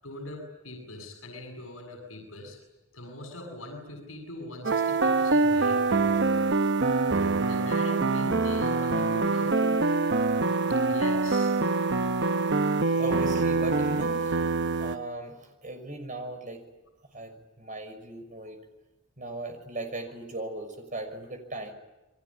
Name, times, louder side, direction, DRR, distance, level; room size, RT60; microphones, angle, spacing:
voice 1, 0.0-2.6 2.9-6.0 7.5-9.9 10.9-11.6, left 1 dB, 75° left, 3 dB, 7.6 m, -41 dB
sound 1, 4.6-15.0, right 3 dB, 55° right, 1.0 m, -25 dB
voice 2, 13.0-14.4 14.8-16.6 17.1-18.6 19.2-21.7, right 2 dB, 40° right, 6 dB, 6.1 m, -37 dB
29.5 x 23.5 x 8.7 m, 1.0 s
head